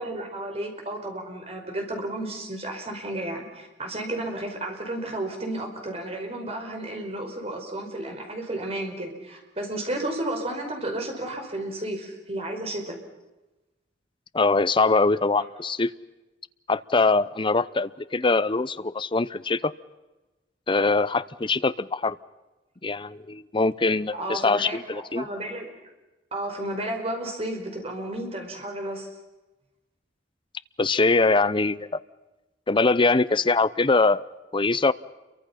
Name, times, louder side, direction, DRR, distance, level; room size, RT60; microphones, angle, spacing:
voice 1, 0.0-13.0 15.4-15.5 24.1-25.7 26.3-29.1, right 1 dB, 35° right, 3 dB, 5.0 m, -32 dB
voice 2, 14.3-15.9 16.7-19.7 20.7-22.2 22.8-25.3 30.8-32.0 32.7-34.2 34.5-34.9, left 3 dB, 30° left, 15 dB, 0.7 m, -22 dB
29.0 x 24.0 x 5.8 m, 1.1 s
head